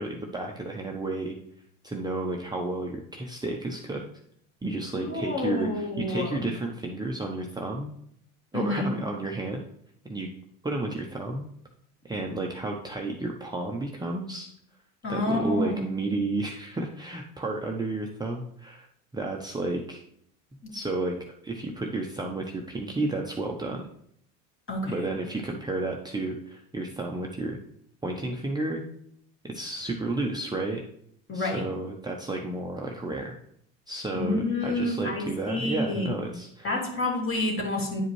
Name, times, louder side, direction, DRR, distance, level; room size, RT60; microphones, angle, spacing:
voice 1, 0.0-1.4 1.8-4.1 4.6-7.9 8.5-9.6 10.1-10.3 10.6-11.4 12.0-14.5 15.1-18.9 19.1-20.0 20.7-23.9 24.8-27.6 28.0-28.8 29.4-30.8 31.3-33.3 33.9-36.8, right 2 dB, 10° right, 0 dB, 0.7 m, -32 dB
voice 2, 5.0-6.4 8.5-8.9 15.0-15.9 20.6-20.7 24.7-25.1 31.3-31.6 34.1-36.2 36.6-38.0, left 2 dB, 30° left, -1 dB, 2.6 m, -29 dB
9.9 x 4.9 x 3.1 m, 0.69 s
hypercardioid pair, 90°, 40 cm